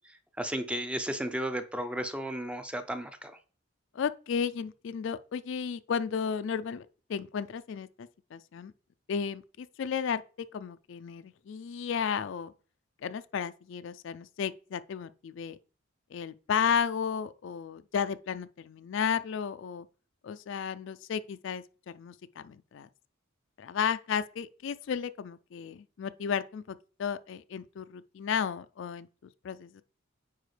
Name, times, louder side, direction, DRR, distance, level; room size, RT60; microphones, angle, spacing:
voice 1, 0.0-3.4, right 1 dB, 5° right, 0.4 m, -34 dB
voice 2, 3.9-8.7 9.1-10.2 10.5-12.5 13.0-15.6 16.1-19.9 20.2-22.9 23.6-29.1 29.4-29.8, left 7 dB, 60° left, 0.3 m, -33 dB
9.2 x 4.5 x 3.3 m
head